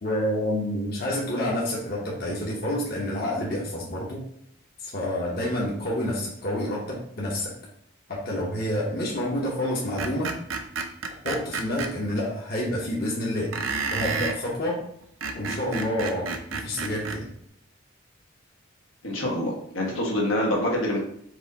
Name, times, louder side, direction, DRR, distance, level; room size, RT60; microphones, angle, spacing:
voice 1, 0.0-4.3 4.8-7.5 8.1-10.4 11.2-13.6 13.9-14.9 15.3-17.3, left 1 dB, 50° left, -4 dB, 0.9 m, -28 dB
Screech, 10.0-11.9 13.5-14.4 15.0-17.2, right 4 dB, 80° right, 0.6 m, -30 dB
voice 2, 19.0-21.0, left 1 dB, 85° left, -2 dB, 1.3 m, -26 dB
4.7 x 2.6 x 4.0 m, 0.69 s
head